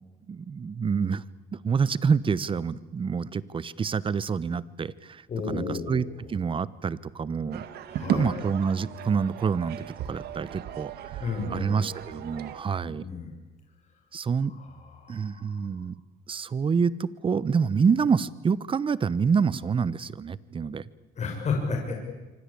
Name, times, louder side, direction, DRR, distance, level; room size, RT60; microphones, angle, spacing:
voice 1, 0.3-1.2 1.5-7.6 8.0-13.0 14.1-14.5 15.1-16.0 16.3-20.8, right 6 dB, 30° right, 19 dB, 1.1 m, -27 dB
voice 2, 5.3-6.3 7.9-8.4 11.2-11.8 12.8-13.3 14.6-15.7 21.2-21.9, left 4 dB, 45° left, 2 dB, 6.5 m, -33 dB
sound 1, 7.5-12.6, right 10 dB, 70° right, 2.0 m, -36 dB
26.0 x 25.0 x 8.6 m, 1.2 s
cardioid pair, 110°, 17 cm